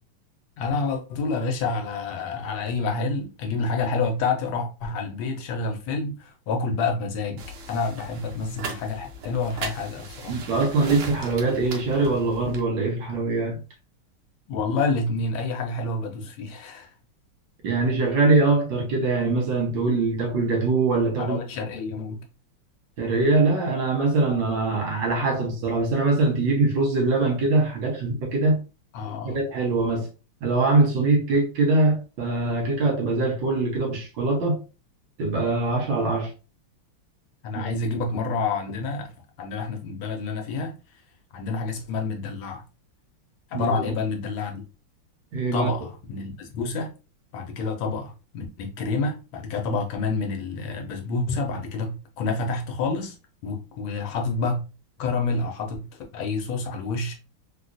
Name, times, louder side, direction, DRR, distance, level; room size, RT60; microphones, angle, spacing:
voice 1, 0.6-10.3 14.5-16.9 21.2-22.2 28.9-29.4 37.4-39.1 39.4-40.7 41.3-42.6 43.5-44.6 45.5-46.9 47.3-53.2 53.4-54.6 55.0-57.2, left 3 dB, 70° left, 1.4 m, -28 dB
sound 1, 7.4-12.6, right 3 dB, 85° right, 1.6 m, -38 dB
voice 2, 10.3-13.6 17.6-21.4 23.0-28.6 29.2-30.1 30.4-34.6 35.2-36.3 43.5-43.8 45.3-45.7, right 3 dB, 65° right, 1.6 m, -23 dB
3.9 x 2.4 x 2.5 m
omnidirectional pair, 2.4 m